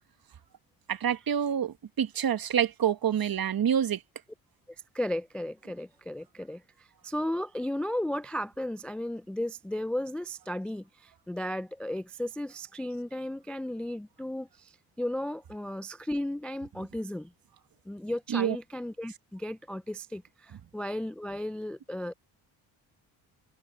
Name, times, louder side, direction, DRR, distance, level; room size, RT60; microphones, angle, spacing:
voice 1, 0.9-4.0 18.3-18.6, right 9 dB, 45° right, 1.4 m, -27 dB
voice 2, 4.9-17.3 17.9-22.1, left 1 dB, 5° left, 0.3 m, -35 dB
hypercardioid pair, 50°, 47 cm